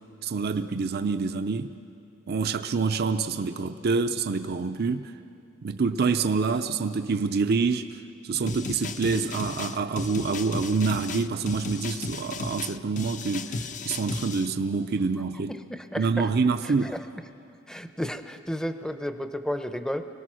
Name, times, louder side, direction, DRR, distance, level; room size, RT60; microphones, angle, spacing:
voice 1, 0.2-1.7 2.3-5.1 5.6-15.5 16.0-17.0, right 4 dB, 50° right, 8 dB, 0.5 m, -27 dB
sound 1, 8.5-14.5, left 3 dB, 40° left, 0.7 m, -35 dB
voice 2, 15.5-16.3 16.6-17.2 17.7-20.1, equal, 5° left, 9 dB, 0.7 m, -33 dB
24.0 x 19.0 x 6.3 m, 2.6 s
head